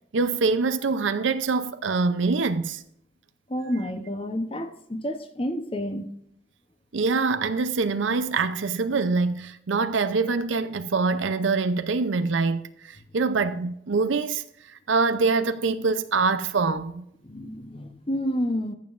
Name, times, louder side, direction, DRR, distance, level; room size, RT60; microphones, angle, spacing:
voice 1, 0.1-2.8 6.9-14.4 14.9-17.0, right 4 dB, 90° right, 0.6 m, -24 dB
voice 2, 3.5-6.1 17.2-18.7, equal, 30° left, 0.8 m, -29 dB
15.0 x 7.2 x 2.5 m
head